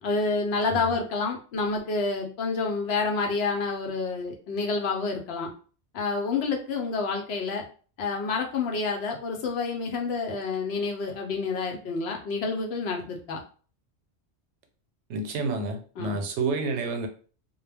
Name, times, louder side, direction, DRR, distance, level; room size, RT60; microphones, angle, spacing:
voice 1, 0.0-5.5 5.9-7.6 8.0-13.4 16.0-16.2, left 4 dB, 70° left, 0.8 m, -28 dB
voice 2, 15.1-17.1, right 3 dB, 85° right, 0.9 m, -29 dB
2.2 x 2.1 x 3.3 m
omnidirectional pair, 1.1 m